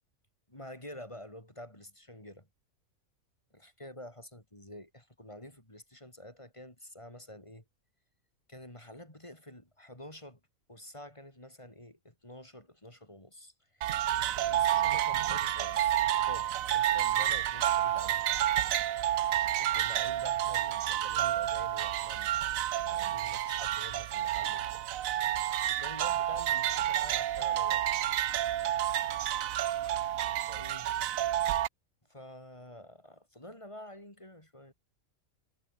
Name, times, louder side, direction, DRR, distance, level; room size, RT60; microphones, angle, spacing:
voice 1, 0.5-2.5 3.5-7.6 8.5-10.4 10.7-14.1 14.4-18.4 19.6-24.8 25.3-27.9 30.4-30.9 32.1-34.7, left 1 dB, 20° left, 5.3 m, -49 dB
sound 1, 13.8-31.7, right 12 dB, 75° right, 1.1 m, -30 dB
omnidirectional pair, 1.4 m